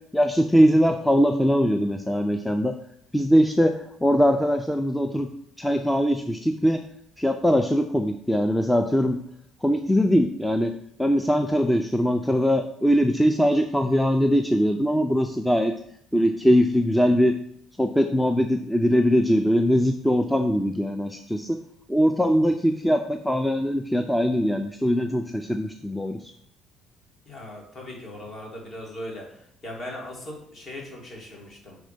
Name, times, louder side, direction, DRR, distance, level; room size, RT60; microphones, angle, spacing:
voice 1, 0.1-2.8 3.1-5.3 5.6-6.8 7.2-9.2 9.6-10.7 11.0-15.7 16.1-17.4 17.8-21.6 21.9-26.3, equal, 5° left, 6 dB, 0.4 m, -21 dB
voice 2, 27.3-29.2 29.6-31.8, left 1 dB, 40° left, -1 dB, 2.4 m, -38 dB
6.4 x 3.5 x 5.1 m, 0.65 s
cardioid pair, 105°, 0 cm